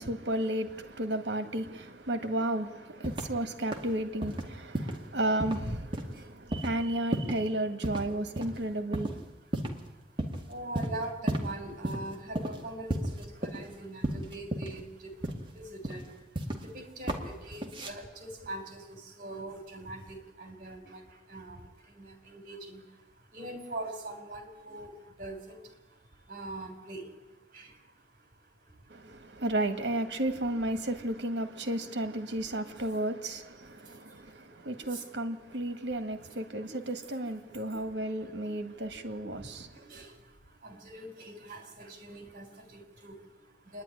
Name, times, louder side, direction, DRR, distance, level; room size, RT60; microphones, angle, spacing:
voice 1, 0.0-9.2 11.7-11.8 28.9-39.8, right 1 dB, 80° right, 1.8 m, -33 dB
sound 1, 3.0-3.4 3.7-3.9 4.2-4.4 4.7-5.1 5.4-5.6 5.9-6.2 6.5-6.7 7.1-7.5 7.8-8.1 8.4-8.5 8.9-9.2 9.5-9.9 10.2-10.4 10.7-11.5 11.8-12.0 12.3-12.6 12.9-13.7 14.0-14.8 15.2-15.5 15.8-16.7 17.1-17.2 17.5-17.9, right 1 dB, 30° right, 2.2 m, -33 dB
voice 2, 4.7-5.2 6.0-6.7 8.4-8.8 9.3-29.4 32.0-33.1 33.6-43.8, right 2 dB, 50° right, 3.9 m, -45 dB
27.0 x 10.5 x 9.9 m
head